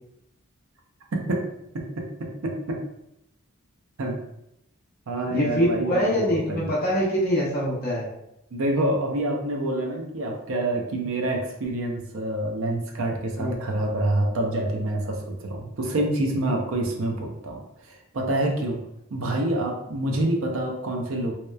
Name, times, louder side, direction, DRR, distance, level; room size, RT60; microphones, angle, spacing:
voice 1, 1.1-1.5 1.7-2.8 4.0-4.2 5.1-6.8 8.5-18.8 19.1-21.3, right 1 dB, 70° right, 2 dB, 0.5 m, -27 dB
voice 2, 5.3-8.1 13.4-13.6, equal, 45° left, -6 dB, 0.8 m, -24 dB
2.9 x 2.0 x 2.2 m, 0.82 s
head